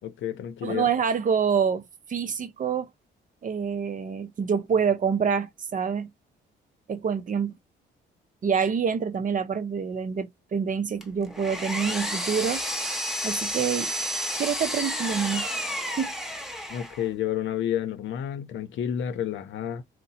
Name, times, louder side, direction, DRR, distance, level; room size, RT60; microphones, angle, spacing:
voice 1, 0.0-0.9 16.7-19.8, left 10 dB, 70° left, 0.7 m, -30 dB
voice 2, 0.6-1.8 2.1-2.9 3.4-6.1 6.9-7.5 8.4-12.6 13.2-13.9 14.4-15.5 16.0-16.1, right 6 dB, 40° right, 0.5 m, -26 dB
Power tool, 11.0-17.1, equal, ahead, 0.6 m, -31 dB
2.7 x 2.1 x 4.1 m
cardioid pair, 90°, 20 cm